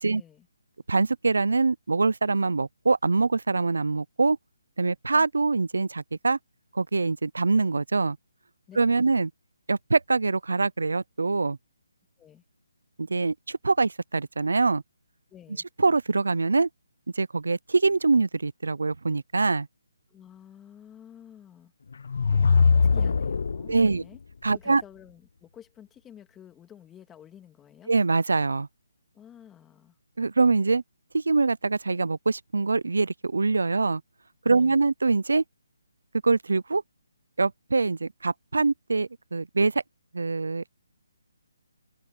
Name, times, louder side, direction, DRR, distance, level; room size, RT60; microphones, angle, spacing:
voice 1, 0.1-0.5 8.7-8.8 12.2-12.4 15.3-15.6 20.1-21.7 22.9-24.2 24.5-27.9 29.1-30.0 34.5-34.9, left 9 dB, 10° left, 2.7 m, -50 dB
voice 2, 0.9-4.4 4.8-6.4 6.7-8.2 8.8-9.3 9.7-11.6 13.0-14.8 15.8-16.7 17.2-19.7 23.7-24.0 24.4-24.8 27.9-28.7 30.2-30.8 31.1-34.0 34.5-35.4 36.2-36.8 37.4-39.8 40.1-40.7, right 3 dB, 85° right, 0.5 m, -24 dB
sound 1, 21.9-24.0, left 5 dB, 60° left, 0.5 m, -22 dB
hypercardioid pair, 165°, 0 cm